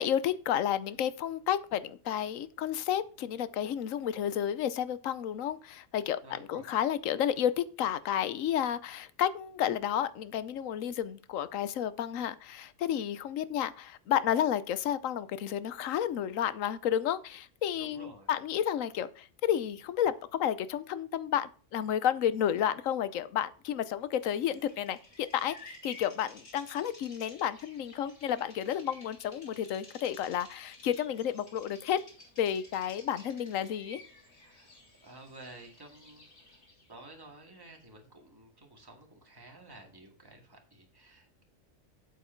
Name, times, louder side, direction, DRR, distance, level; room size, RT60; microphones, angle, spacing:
voice 1, 0.0-32.0 32.4-34.0, left 10 dB, 85° left, 1.1 m, -31 dB
voice 2, 6.2-6.7 17.7-18.3 34.4-34.7 35.0-36.6 36.9-41.4, right 2 dB, 15° right, 2.1 m, -52 dB
Bird vocalization bird call bird song, 24.3-36.9, left 2 dB, 55° left, 2.7 m, -54 dB
8.1 x 8.1 x 4.5 m
omnidirectional pair, 1.3 m